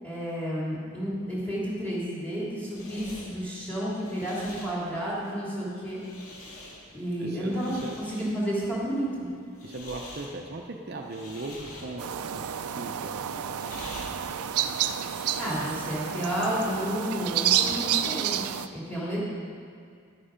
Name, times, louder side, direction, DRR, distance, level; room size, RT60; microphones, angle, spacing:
voice 1, 0.0-6.0 6.9-9.3 15.4-18.4 18.7-19.3, equal, 5° left, -7 dB, 3.0 m, -31 dB
sound 1, 2.2-16.1, left 1 dB, 75° left, 2.2 m, -47 dB
voice 2, 7.2-8.0 9.6-12.5 12.7-13.2, right 2 dB, 45° right, 1 dB, 0.6 m, -38 dB
sound 2, 12.0-18.7, right 9 dB, 90° right, 0.5 m, -29 dB
11.5 x 9.9 x 5.1 m, 2.2 s
head